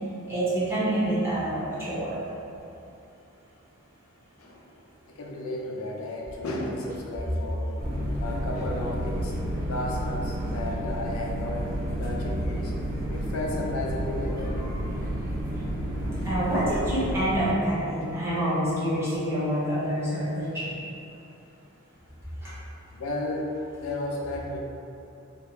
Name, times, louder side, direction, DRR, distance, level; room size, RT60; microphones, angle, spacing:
voice 1, 0.3-2.2 16.2-20.7 22.4-22.5, right 1 dB, 10° right, -11 dB, 0.8 m, -27 dB
voice 2, 5.1-7.7 8.2-9.3 9.7-11.7 12.0-12.7 13.1-14.7 16.2-16.3 22.9-23.5 23.8-24.6, left 1 dB, 80° left, -1 dB, 0.5 m, -33 dB
sound 1, 7.8-17.5, equal, 40° right, 0.8 m, -31 dB
3.4 x 2.8 x 2.4 m, 2.7 s
head